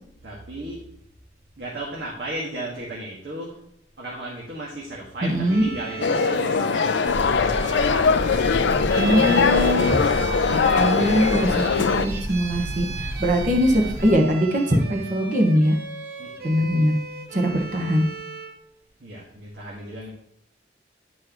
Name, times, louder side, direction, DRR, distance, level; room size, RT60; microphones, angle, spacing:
voice 1, 0.2-0.8 1.6-3.6 4.0-7.0 16.2-16.6 19.0-20.1, right 1 dB, 75° right, -5 dB, 1.6 m, -35 dB
voice 2, 5.2-5.7 9.0-10.0 10.8-15.8 16.4-16.9 17.3-18.0, equal, 45° right, 2 dB, 1.1 m, -21 dB
Bowed string instrument, 5.4-18.6, right 4 dB, 60° right, 0.7 m, -36 dB
sound 1, 6.0-12.1, left 5 dB, 85° left, 0.4 m, -21 dB
sound 2, 7.1-14.1, equal, 15° right, 1.1 m, -32 dB
10.0 x 4.7 x 3.0 m, 0.76 s
head